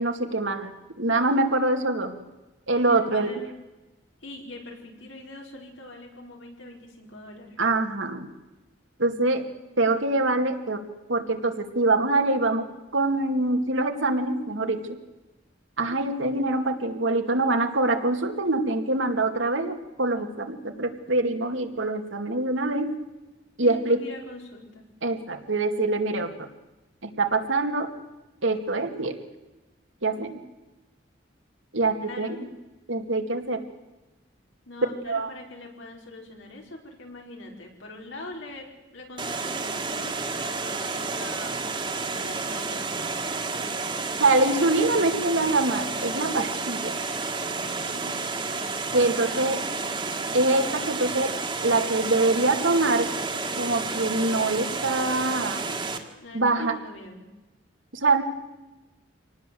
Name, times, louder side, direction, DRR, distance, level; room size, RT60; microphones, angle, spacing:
voice 1, 0.0-2.1 2.7-3.3 7.6-8.3 9.0-9.4 9.8-14.8 15.8-22.9 23.6-24.0 25.0-26.5 27.0-27.9 28.4-29.2 30.0-30.4 31.7-32.4 32.9-33.6 35.1-35.3 44.2-47.0 48.9-49.6 50.3-51.3 51.6-53.1 53.6-55.7 56.3-56.8 57.9-58.2, right 2 dB, 85° right, 5 dB, 2.4 m, -24 dB
voice 2, 2.8-3.5 4.2-7.6 9.2-9.3 23.6-24.8 32.0-32.5 34.7-41.6 42.1-42.8 47.9-48.3 49.2-49.8 56.2-57.3, left 2 dB, 85° left, 1 dB, 5.1 m, -43 dB
Water, 39.2-56.0, right 4 dB, 25° right, 1.8 m, -31 dB
26.0 x 18.5 x 7.9 m, 1.1 s
head